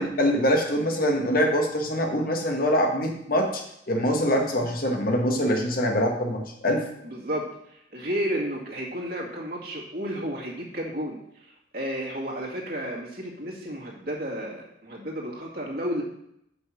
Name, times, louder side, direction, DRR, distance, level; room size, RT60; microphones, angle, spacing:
voice 1, 0.0-6.9, equal, 50° left, 2 dB, 1.3 m, -24 dB
voice 2, 7.0-16.0, equal, 55° right, -3 dB, 2.1 m, -32 dB
6.0 x 5.7 x 5.9 m, 0.77 s
head